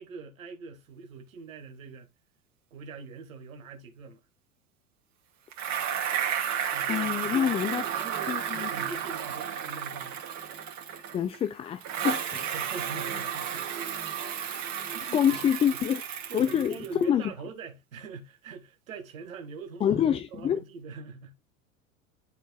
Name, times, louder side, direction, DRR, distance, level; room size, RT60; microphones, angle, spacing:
voice 1, 0.0-2.1 2.7-4.2 6.7-10.2 12.5-13.7 14.9-15.4 16.3-21.3, right 4 dB, 80° right, 1.6 m, -43 dB
Bicycle, 5.5-11.4 11.8-17.0, right 8 dB, 45° right, 2.4 m, -33 dB
voice 2, 6.9-7.8 8.3-8.7 11.1-12.5 15.1-16.0 16.3-17.2 19.8-20.6, left 9 dB, 15° left, 0.3 m, -26 dB
10.5 x 4.4 x 2.3 m
hypercardioid pair, 85°, 40 cm